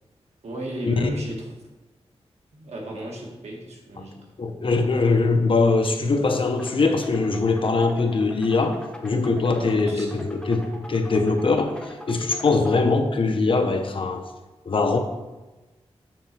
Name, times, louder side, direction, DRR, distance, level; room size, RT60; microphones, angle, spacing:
voice 1, 0.4-1.5 2.5-4.2 9.5-10.2, right 1 dB, 80° right, -1 dB, 1.8 m, -34 dB
voice 2, 4.4-14.2 14.7-15.0, left 3 dB, 50° left, 6 dB, 0.8 m, -22 dB
sound 1, 6.6-12.8, left 1 dB, 5° left, 0.9 m, -41 dB
7.6 x 3.9 x 5.9 m, 1.1 s
wide cardioid pair, 105°, 11 cm